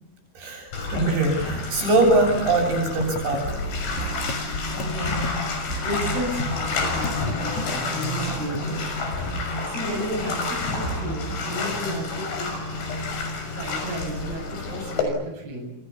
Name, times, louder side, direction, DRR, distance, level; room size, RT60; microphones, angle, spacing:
voice 1, 0.3-3.6, right 2 dB, 75° right, 2 dB, 10.0 m, -22 dB
Bathtub (filling or washing), 0.7-15.0, left 3 dB, 80° left, 8.5 m, -29 dB
sound 1, 1.2-12.8, right 4 dB, 15° right, 6.4 m, -40 dB
sound 2, 3.0-3.4 4.3-4.5 4.8-5.8 6.4-9.0, equal, 55° left, 2.2 m, -34 dB
voice 2, 4.7-5.3 5.8-8.9 9.2-9.4 9.7-12.5 13.5-15.8, equal, 60° right, 0 dB, 9.8 m, -33 dB
29.5 x 28.0 x 7.1 m, 0.86 s
omnidirectional pair, 5.2 m